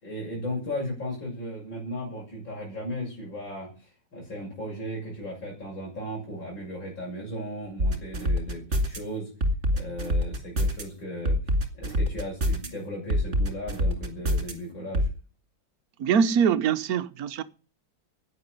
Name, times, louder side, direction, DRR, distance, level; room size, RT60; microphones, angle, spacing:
voice 1, 0.0-9.3 9.7-11.4 11.7-15.1, equal, 85° left, 7.3 m, -36 dB
sound 1, 7.8-9.0 9.4-10.8 11.3-12.7 13.1-14.5 14.9-15.1, equal, 40° right, 2.5 m, -25 dB
voice 2, 16.0-17.4, right 7 dB, 60° right, 1.2 m, -23 dB
11.5 x 9.7 x 9.6 m
omnidirectional pair, 2.0 m